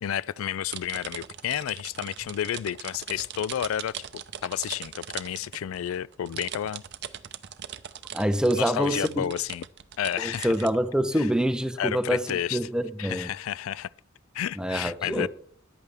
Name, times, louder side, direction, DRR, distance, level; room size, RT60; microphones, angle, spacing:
voice 1, 0.0-3.9 4.4-6.8 8.6-9.6 10.0-10.7 11.2-11.3 11.8-12.6 13.0-13.9 14.3-15.3, left 10 dB, 85° left, 0.3 m, -31 dB
sound 1, 0.7-10.7, right 10 dB, 60° right, 0.6 m, -40 dB
voice 2, 8.1-9.3 10.2-13.3 14.6-15.3, equal, 5° right, 0.6 m, -26 dB
14.0 x 11.0 x 3.4 m
head